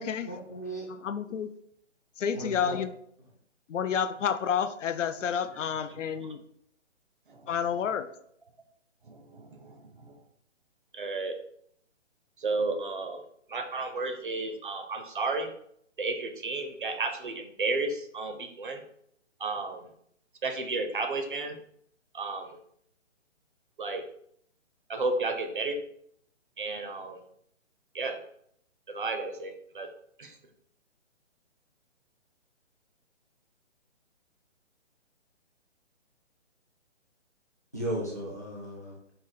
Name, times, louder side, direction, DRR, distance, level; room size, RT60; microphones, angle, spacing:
voice 1, 0.2-0.9 2.3-2.8 37.7-38.9, right 1 dB, 15° left, 0.5 m, -35 dB
voice 2, 1.0-1.5 2.2-2.9 3.7-6.4 7.5-8.1, left 7 dB, 80° left, 0.5 m, -30 dB
voice 3, 9.1-10.1 10.9-11.3 12.4-13.2 13.5-15.5 16.0-18.8 19.4-19.8 20.4-21.6 22.1-22.5 23.8-24.0 24.9-25.8 26.6-27.2 27.9-28.2 28.9-29.9 30.2-30.3, right 3 dB, 45° right, 0.5 m, -32 dB
4.4 x 2.9 x 3.8 m
hypercardioid pair, 165°, 36 cm